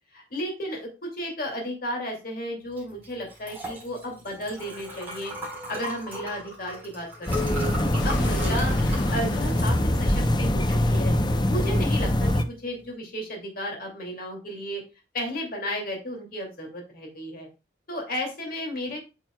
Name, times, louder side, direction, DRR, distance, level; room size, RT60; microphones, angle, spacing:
voice 1, 0.1-5.3 5.7-11.1 11.5-12.3 12.6-14.8 15.1-17.5 17.9-19.0, equal, 50° left, 1 dB, 2.4 m, -33 dB
Liquid, 2.7-12.9, equal, 10° right, 4.1 m, -38 dB
sound 1, 7.3-12.4, left 1 dB, 25° left, 0.7 m, -23 dB
Explosion, 8.0-10.9, left 1 dB, 85° left, 3.5 m, -38 dB
8.8 x 6.3 x 2.2 m, 0.29 s
head